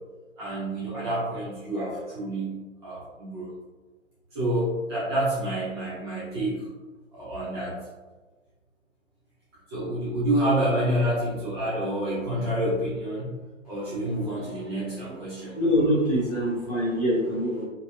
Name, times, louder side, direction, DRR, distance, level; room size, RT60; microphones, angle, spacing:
voice 1, 0.4-3.5 4.3-6.7 7.1-7.8 9.7-13.3 13.7-15.5, right 1 dB, 20° right, -11 dB, 1.1 m, -28 dB
voice 2, 15.6-17.6, equal, 30° left, -9 dB, 1.0 m, -24 dB
3.2 x 3.0 x 2.8 m, 1.3 s
hypercardioid pair, 165°, 40 cm